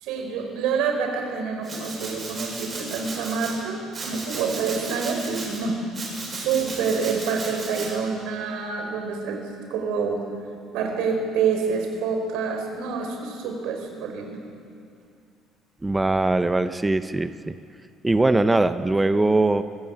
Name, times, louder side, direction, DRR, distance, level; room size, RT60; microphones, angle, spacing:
voice 1, 0.0-5.8 6.3-9.4 9.7-10.2 10.7-14.4, right 5 dB, 85° right, 3 dB, 4.7 m, -27 dB
Domestic sounds home sounds, 1.6-3.5 3.9-5.6 5.9-7.9, right 3 dB, 25° right, 7.0 m, -35 dB
voice 2, 15.8-17.5 18.0-19.6, right 2 dB, 10° right, 10 dB, 0.6 m, -21 dB
24.5 x 15.0 x 8.6 m, 2.4 s
cardioid pair, 160°, 0 cm